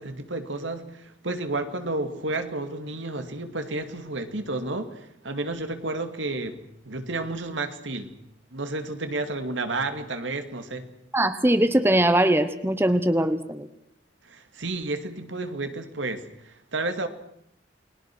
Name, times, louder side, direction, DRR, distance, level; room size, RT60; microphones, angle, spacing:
voice 1, 0.0-8.2 8.5-10.9 14.2-17.1, right 2 dB, 85° right, 2.4 m, -31 dB
voice 2, 11.1-13.7, right 1 dB, 10° right, 1.1 m, -21 dB
29.5 x 21.0 x 6.2 m
head